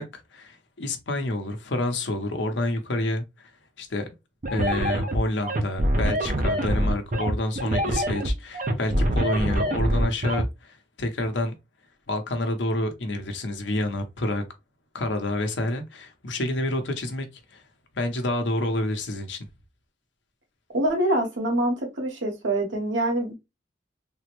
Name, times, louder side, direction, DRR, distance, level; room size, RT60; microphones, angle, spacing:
voice 1, 0.0-3.5 3.8-4.1 4.5-11.5 12.1-14.4 14.9-17.3 17.5-17.6 17.9-19.4, left 1 dB, 75° left, 0.8 m, -28 dB
sound 1, 4.4-10.4, right 1 dB, 45° right, 0.5 m, -24 dB
voice 2, 20.7-23.3, right 1 dB, 85° right, 1.2 m, -25 dB
3.6 x 2.1 x 2.9 m
head